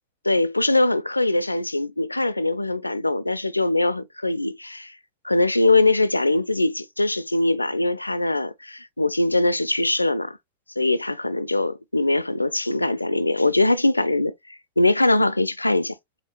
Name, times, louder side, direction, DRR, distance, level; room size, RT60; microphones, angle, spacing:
voice 1, 0.3-5.0 5.2-10.4 10.8-16.0, left 2 dB, 85° left, 0.4 m, -22 dB
4.5 x 4.1 x 2.3 m
figure-of-eight pair, 90°, 0 cm